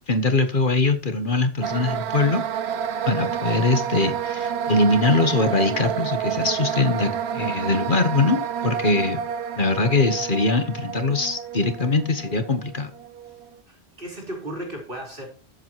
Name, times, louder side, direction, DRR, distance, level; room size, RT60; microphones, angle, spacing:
voice 1, 0.1-2.4 3.1-9.2 9.6-12.9, left 3 dB, 50° left, 8 dB, 1.4 m, -22 dB
sound 1, 1.6-13.5, right 8 dB, 75° right, 1.0 m, -29 dB
voice 2, 13.7-15.3, right 1 dB, 55° right, 0 dB, 4.5 m, -35 dB
13.0 x 7.8 x 3.1 m, 0.38 s
omnidirectional pair, 1.1 m